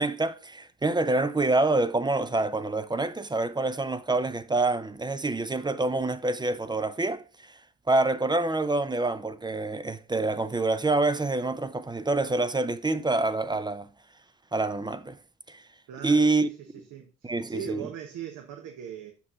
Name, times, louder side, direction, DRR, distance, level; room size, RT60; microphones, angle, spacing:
voice 1, 0.0-7.5 7.9-13.9 14.5-15.2 15.5-15.6 16.0-16.5 17.2-17.8, right 2 dB, 15° right, 0.5 m, -26 dB
voice 2, 15.9-19.1, right 8 dB, 65° right, 1.0 m, -40 dB
6.8 x 5.5 x 3.7 m
supercardioid pair, 70°, 33 cm